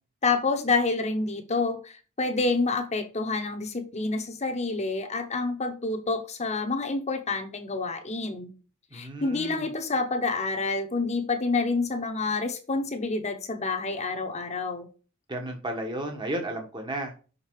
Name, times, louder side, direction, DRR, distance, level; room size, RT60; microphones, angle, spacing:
voice 1, 0.2-8.5 8.9-14.9, left 3 dB, 30° left, 5 dB, 1.0 m, -28 dB
voice 2, 8.9-9.6 15.3-17.2, right 1 dB, 20° right, 3 dB, 1.2 m, -33 dB
6.6 x 4.2 x 4.6 m, 0.35 s
head